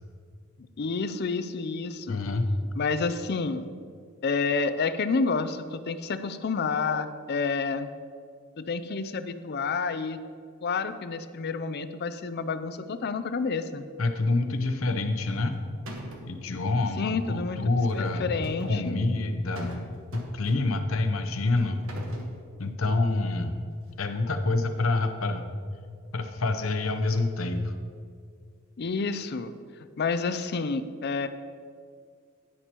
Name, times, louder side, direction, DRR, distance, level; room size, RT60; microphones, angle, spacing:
voice 1, 0.8-2.2 2.8-3.7 4.2-7.9 8.6-10.2 10.6-13.8 17.0-17.6 17.9-19.1 28.8-29.5 30.0-31.3, left 4 dB, 50° left, 11 dB, 0.5 m, -29 dB
voice 2, 2.1-2.5 14.0-15.6 16.3-18.4 18.7-21.8 22.6-23.6 24.0-25.4 26.1-27.7, left 2 dB, 80° left, 7 dB, 0.8 m, -27 dB
sound 1, 15.2-15.5 15.9-16.4 17.9-18.8 19.6-19.8 20.1-20.9 21.6-22.3, equal, 70° right, 1.4 m, -40 dB
11.0 x 9.9 x 3.0 m, 2.1 s
head